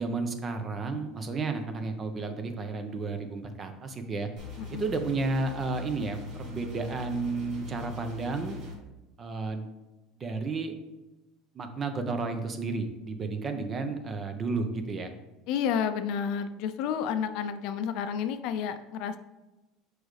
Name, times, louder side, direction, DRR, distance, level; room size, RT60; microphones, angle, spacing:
voice 1, 0.0-4.3 4.7-8.6 9.2-9.7 10.2-10.7 11.5-15.1, right 3 dB, 30° right, 7 dB, 0.8 m, -32 dB
sound 1, 4.4-8.8, left 3 dB, 60° right, 1.5 m, -41 dB
voice 2, 15.5-19.2, left 7 dB, 65° left, 9 dB, 0.5 m, -30 dB
6.2 x 4.8 x 3.3 m, 1.0 s
supercardioid pair, 115°, 0 cm